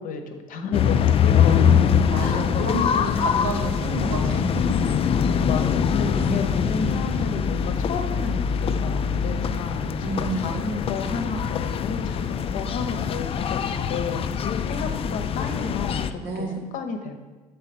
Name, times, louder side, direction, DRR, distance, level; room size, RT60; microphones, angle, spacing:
voice 1, 0.0-1.7 2.1-2.4 5.4-9.9 10.4-14.3 14.7-16.5 16.7-17.2, left 4 dB, 55° left, 6 dB, 0.8 m, -32 dB
sound 1, 0.7-16.1, left 7 dB, 35° left, 0.4 m, -23 dB
voice 2, 1.5-4.9 6.1-6.4 10.0-10.6 16.2-16.6, right 3 dB, 65° right, 1 dB, 1.3 m, -30 dB
6.5 x 4.0 x 4.2 m, 1.3 s
hypercardioid pair, 70°, 17 cm